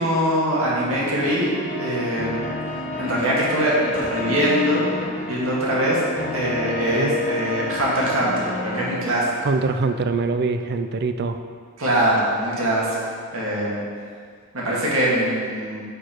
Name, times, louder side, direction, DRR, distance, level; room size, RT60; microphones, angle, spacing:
voice 1, 0.0-2.5 3.0-4.9 5.3-6.0 6.3-9.3 11.8-13.0 13.3-13.8 14.5-15.8, right 1 dB, 65° right, -6 dB, 2.0 m, -22 dB
sound 1, 0.9-8.9, left 3 dB, 35° left, 1.4 m, -31 dB
voice 2, 9.4-11.4, right 3 dB, 45° right, 8 dB, 0.4 m, -23 dB
9.5 x 4.5 x 4.5 m, 2.1 s
head